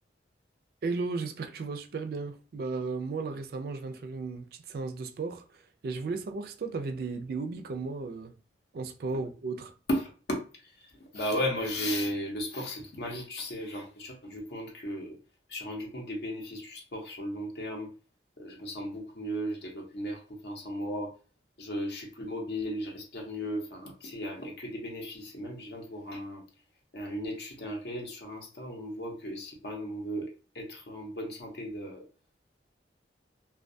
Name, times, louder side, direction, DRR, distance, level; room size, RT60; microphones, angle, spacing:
voice 1, 0.8-8.3 8.7-9.7, right 4 dB, 55° right, 0.3 m, -35 dB
voice 2, 9.9-15.2 15.5-17.9 18.4-21.1 21.6-26.5 26.9-32.0, equal, 60° left, 0.6 m, -36 dB
2.2 x 2.2 x 2.5 m
head